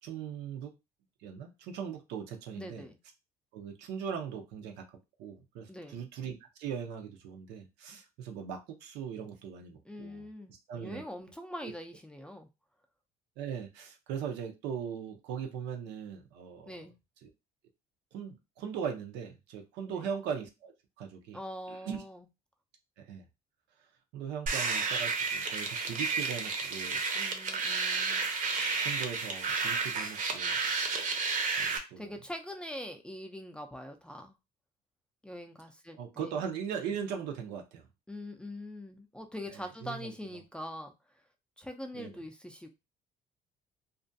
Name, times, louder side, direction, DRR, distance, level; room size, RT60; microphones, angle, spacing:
voice 1, 0.0-0.7 1.2-2.8 3.5-10.3 10.7-11.1 11.6-11.7 13.4-16.7 17.2-17.3 18.1-21.4 21.7-22.0 23.0-23.2 24.1-27.0 28.1-28.2 28.8-30.6 30.9-31.2 31.6-32.2 36.0-37.9 39.5-40.1 41.9-42.2, right 7 dB, 90° right, 0.6 m, -39 dB
voice 2, 2.5-3.0 5.7-6.0 9.9-12.5 16.7-17.0 19.9-20.1 21.3-22.2 27.1-28.3 32.0-34.3 35.2-36.4 38.1-40.9 41.6-42.7, left 1 dB, 5° left, 0.4 m, -43 dB
sound 1, 24.5-31.8, right 4 dB, 50° right, 0.6 m, -31 dB
2.4 x 2.1 x 2.5 m
cardioid pair, 110°, 17 cm